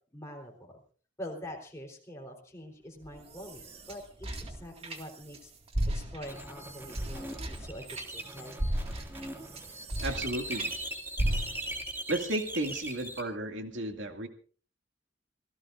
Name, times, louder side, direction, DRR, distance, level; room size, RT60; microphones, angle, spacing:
voice 1, 0.1-0.8 1.2-5.5 5.9-7.9 8.1-8.6, equal, 15° left, 0 dB, 3.7 m, -45 dB
sound 1, 3.0-5.4 5.7-10.7 11.2-11.9, right 1 dB, 30° right, 2.1 m, -35 dB
sound 2, 6.2-13.2, right 1 dB, 10° right, 2.3 m, -40 dB
voice 2, 10.0-10.7 12.1-14.3, right 1 dB, 80° right, 4 dB, 2.3 m, -33 dB
27.0 x 16.5 x 2.6 m, 0.42 s
head